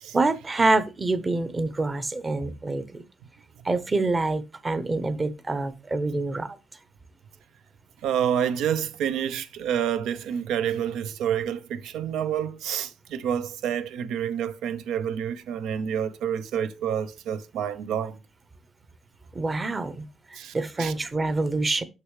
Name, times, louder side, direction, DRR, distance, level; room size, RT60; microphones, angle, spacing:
voice 1, 0.1-3.0 3.6-6.5 19.3-20.1 20.5-21.8, right 3 dB, 30° right, 0.7 m, -26 dB
voice 2, 8.0-18.2 20.4-20.9, right 9 dB, 85° right, 0.6 m, -28 dB
6.7 x 5.6 x 3.1 m
cardioid pair, 90°, 0 cm